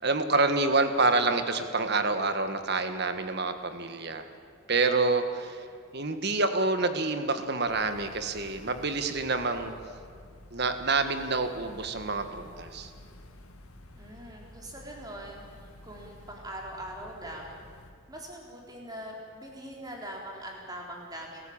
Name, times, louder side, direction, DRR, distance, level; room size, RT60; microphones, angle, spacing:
voice 1, 0.0-4.3 4.7-5.6 5.9-9.8 10.5-12.9, right 3 dB, 50° right, 8 dB, 1.7 m, -27 dB
sound 1, 7.7-17.9, left 1 dB, 85° left, 2.3 m, -51 dB
voice 2, 14.0-15.4 15.8-17.6 18.1-21.4, right 1 dB, 15° right, -1 dB, 4.0 m, -42 dB
29.5 x 15.0 x 8.9 m, 2.1 s
head